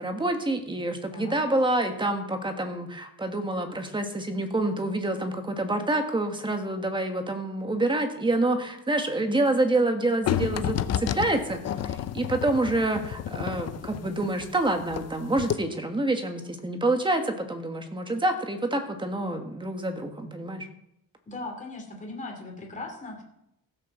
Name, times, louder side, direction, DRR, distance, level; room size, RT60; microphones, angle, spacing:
voice 1, 0.0-20.7, right 2 dB, 15° right, 5 dB, 1.5 m, -27 dB
sound 1, 10.3-15.1 15.4-15.5, left 10 dB, 50° left, 0.6 m, -30 dB
voice 2, 21.3-23.2, left 2 dB, 20° left, 2 dB, 2.7 m, -38 dB
15.5 x 6.6 x 7.2 m, 0.80 s
wide cardioid pair, 180°, 33 cm